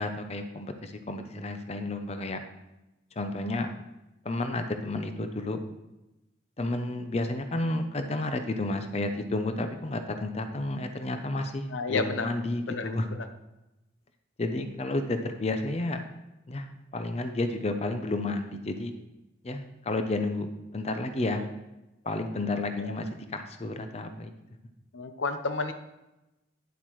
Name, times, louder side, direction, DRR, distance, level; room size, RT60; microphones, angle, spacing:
voice 1, 0.0-2.4 3.2-3.7 4.2-5.6 6.6-13.1 14.4-16.0 16.5-19.0 19.4-21.4 22.0-24.3, left 2 dB, 35° left, 7 dB, 0.6 m, -31 dB
voice 2, 11.7-12.3 12.7-13.3 22.8-23.0 24.9-25.7, left 3 dB, 90° left, 8 dB, 0.7 m, -31 dB
9.2 x 8.0 x 3.1 m, 0.96 s
head